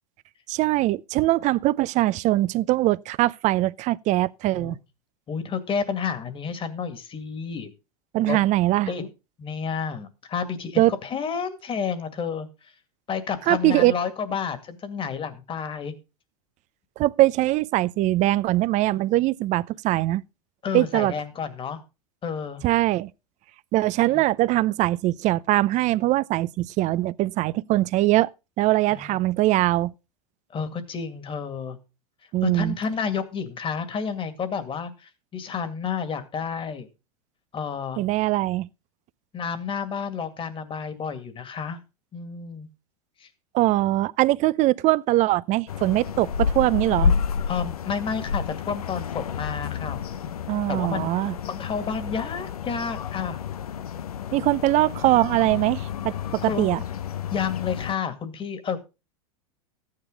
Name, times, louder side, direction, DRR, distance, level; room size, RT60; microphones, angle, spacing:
voice 1, 0.5-4.8 8.1-8.9 10.8-10.9 13.5-13.9 17.0-20.2 20.7-21.1 22.6-23.1 23.7-28.3 28.6-29.9 32.3-32.8 38.0-38.7 43.5-47.1 50.5-51.3 54.3-56.1 56.4-56.8, right 17 dB, 40° right, 0.6 m, -22 dB
voice 2, 5.3-7.7 8.2-8.4 8.9-9.1 9.4-12.5 13.1-15.9 20.6-21.8 22.2-22.6 24.1-24.2 28.9-29.2 30.5-31.8 32.4-36.9 37.5-38.0 39.3-41.8 42.1-42.7 43.2-43.3 47.5-50.4 50.7-53.4 56.4-56.7 57.3-58.8, left 6 dB, 30° left, 2.2 m, -30 dB
sound 1, 45.7-57.9, left 6 dB, 90° left, 0.8 m, -30 dB
14.0 x 9.7 x 3.9 m
hypercardioid pair, 100°, 19 cm